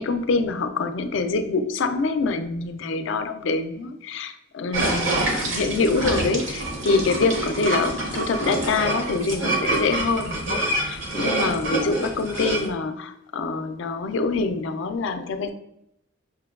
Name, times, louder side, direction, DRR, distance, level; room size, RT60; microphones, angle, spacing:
voice 1, 0.0-15.5, left 3 dB, 60° left, 9 dB, 0.3 m, -25 dB
sound 1, 4.7-12.7, right 2 dB, 65° right, 0.7 m, -26 dB
5.7 x 2.2 x 2.3 m, 0.78 s
head